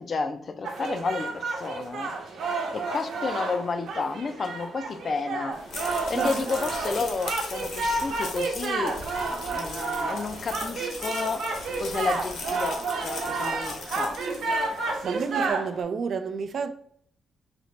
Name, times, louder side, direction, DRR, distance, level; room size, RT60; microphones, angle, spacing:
voice 1, 0.0-2.1 2.7-9.0 9.3-11.5 11.8-14.2, left 4 dB, 40° left, 0.4 m, -31 dB
sound 1, 0.6-15.8, right 3 dB, 70° right, 0.8 m, -31 dB
sound 2, 5.5-15.1, left 3 dB, 65° left, 0.9 m, -39 dB
voice 2, 6.1-6.5 14.7-16.7, right 5 dB, 50° right, 0.4 m, -30 dB
4.1 x 2.9 x 3.2 m
cardioid pair, 140°, 0 cm